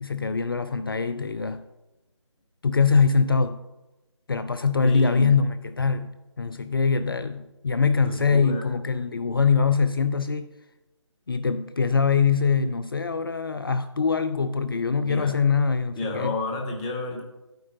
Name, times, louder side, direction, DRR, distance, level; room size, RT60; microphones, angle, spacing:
voice 1, 0.0-1.6 2.6-3.6 4.3-10.5 11.3-16.4, left 5 dB, 50° left, 0.5 m, -23 dB
voice 2, 4.8-5.3 7.9-8.7 15.0-15.3 16.0-17.2, left 2 dB, 10° left, 0.8 m, -31 dB
11.5 x 9.0 x 2.9 m
figure-of-eight pair, 155°, 16 cm